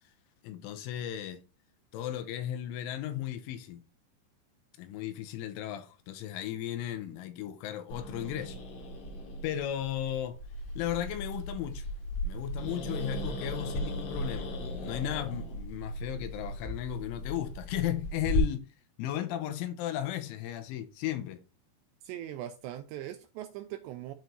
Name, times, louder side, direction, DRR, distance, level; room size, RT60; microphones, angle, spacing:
voice 1, 0.4-1.4 1.9-3.8 4.8-8.6 9.4-10.4 10.8-11.8 12.2-14.5 14.8-18.7 19.0-21.4, left 12 dB, 90° left, 3.2 m, -35 dB
Growling, 7.9-18.4, equal, 55° left, 2.5 m, -37 dB
voice 2, 22.0-24.1, right 12 dB, 80° right, 2.6 m, -40 dB
13.0 x 4.5 x 2.6 m
omnidirectional pair, 5.7 m